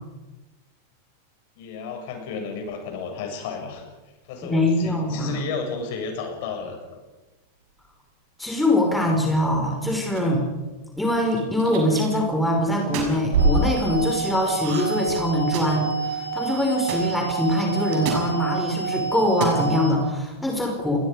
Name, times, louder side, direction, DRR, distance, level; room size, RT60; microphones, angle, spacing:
voice 1, 1.6-3.8 4.2-6.8, left 5 dB, 50° left, 3 dB, 7.2 m, -32 dB
sound 1, 3.2-20.1, right 2 dB, 60° right, 6.6 m, -34 dB
voice 2, 4.4-5.4 8.4-10.4 11.0-21.0, left 1 dB, 5° left, 0 dB, 5.7 m, -23 dB
sound 2, 10.1-10.5 11.3-12.0 12.7-13.2 14.5-15.0 15.3-15.9 16.9-17.0 17.9-18.3 19.2-19.6, right 6 dB, 45° right, 6.2 m, -31 dB
sound 3, 13.4-19.9, right 6 dB, 80° right, 7.4 m, -29 dB
29.5 x 22.0 x 5.3 m, 1.1 s
figure-of-eight pair, 90°, 0 cm